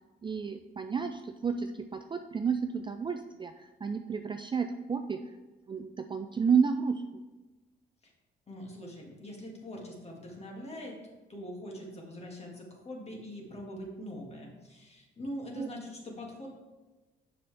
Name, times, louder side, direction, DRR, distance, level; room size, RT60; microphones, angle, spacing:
voice 1, 0.2-3.5 3.8-5.2 5.7-7.0 15.6-15.7, right 6 dB, 25° right, 6 dB, 0.4 m, -31 dB
voice 2, 8.5-10.9 11.3-16.5, equal, 30° left, -1 dB, 1.8 m, -43 dB
6.7 x 5.5 x 3.4 m, 1.2 s
cardioid pair, 90°, 20 cm